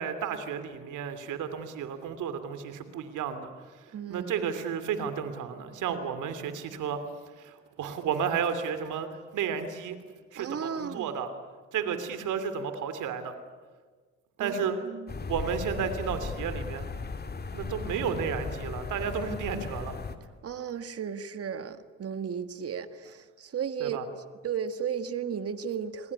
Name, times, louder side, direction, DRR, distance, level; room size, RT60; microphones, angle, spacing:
voice 1, 0.0-7.0 7.4-10.0 10.3-11.3 11.7-13.4 14.4-14.8 15.2-16.9 17.5-20.0 23.8-24.0, right 7 dB, 80° right, 10 dB, 3.0 m, -32 dB
voice 2, 3.9-4.4 10.4-11.2 14.4-15.1 20.4-24.0 24.4-26.1, right 7 dB, 50° right, 11 dB, 1.8 m, -35 dB
sound 1, 15.1-20.2, left 4 dB, 30° left, 2.3 m, -36 dB
28.5 x 21.0 x 9.8 m, 1.4 s
cardioid pair, 90°, 30 cm